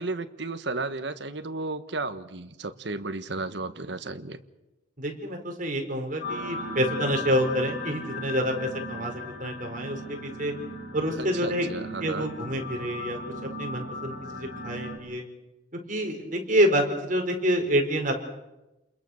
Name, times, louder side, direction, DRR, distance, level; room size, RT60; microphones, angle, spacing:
voice 1, 0.0-4.4 11.1-12.3, right 3 dB, 65° right, 9 dB, 1.4 m, -33 dB
voice 2, 5.0-10.5 10.9-11.7 12.0-15.3 15.9-18.2, equal, 45° right, 3 dB, 4.6 m, -27 dB
sound 1, 6.2-15.0, left 1 dB, 60° left, 6.7 m, -37 dB
30.0 x 21.5 x 6.6 m, 0.99 s
head